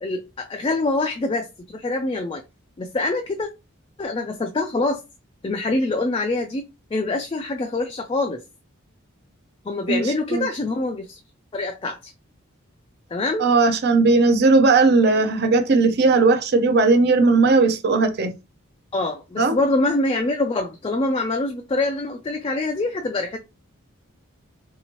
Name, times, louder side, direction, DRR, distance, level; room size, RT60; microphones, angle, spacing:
voice 1, 0.0-2.4 2.8-3.5 4.0-5.0 5.4-8.4 9.7-11.2 11.5-12.1 13.1-13.5 18.9-23.4, left 2 dB, 25° left, 0.3 m, -25 dB
voice 2, 9.9-10.5 13.4-18.3 19.4-19.6, right 3 dB, 50° right, 0.5 m, -17 dB
3.3 x 2.8 x 2.9 m
head